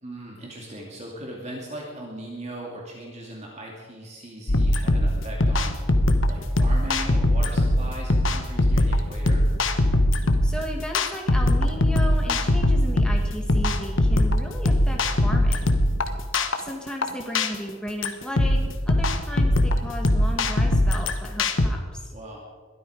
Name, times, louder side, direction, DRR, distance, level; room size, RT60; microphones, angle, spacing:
voice 1, 0.0-5.8 6.3-9.4 22.1-22.4, right 1 dB, 30° right, -2 dB, 2.6 m, -38 dB
sound 1, 4.5-21.7, left 1 dB, 60° left, 1.2 m, -21 dB
voice 2, 10.4-15.7 16.6-22.1, equal, 5° left, 0 dB, 2.3 m, -35 dB
22.0 x 13.0 x 5.0 m, 1.5 s
head